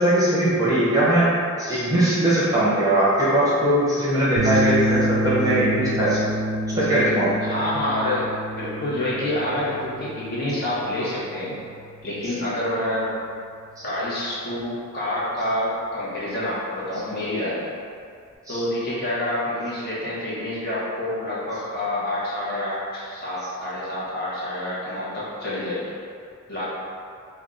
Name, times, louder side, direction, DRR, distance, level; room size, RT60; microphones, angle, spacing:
voice 1, 0.0-6.2 6.7-7.5 13.8-13.9 18.5-18.6, right 1 dB, 15° right, -9 dB, 0.7 m, -20 dB
sound 1, 4.4-12.8, right 1 dB, 50° right, 0.3 m, -28 dB
voice 2, 7.4-11.5 12.0-13.1 13.8-17.7 18.5-25.8 26.5-26.7, left 1 dB, 45° left, -9 dB, 0.9 m, -27 dB
3.4 x 2.3 x 3.7 m, 2.3 s
head